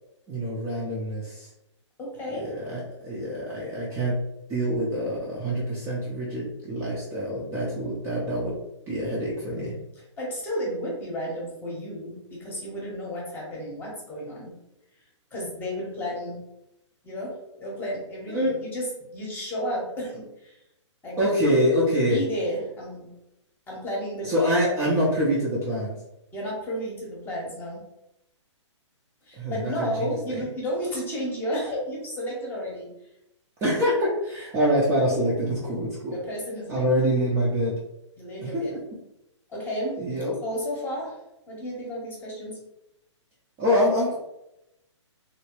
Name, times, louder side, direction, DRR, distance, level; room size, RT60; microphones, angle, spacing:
voice 1, 0.3-1.5 2.4-4.2 4.5-8.6 8.9-9.8 18.3-18.5 21.2-22.2 24.2-26.0 29.3-30.4 33.6-36.2 36.7-37.7 38.4-38.8 40.0-40.3 43.6-44.2, equal, 15° right, -6 dB, 0.6 m, -25 dB
voice 2, 2.0-2.6 10.0-14.5 15.3-16.4 17.0-20.6 21.0-21.2 22.1-23.1 23.7-24.5 26.3-27.8 29.2-32.9 36.1-36.9 38.2-38.8 39.5-40.0 40.4-41.2 41.5-42.6, equal, 10° left, -3 dB, 0.9 m, -32 dB
3.0 x 2.8 x 3.0 m, 0.86 s
hypercardioid pair, 145°, 16 cm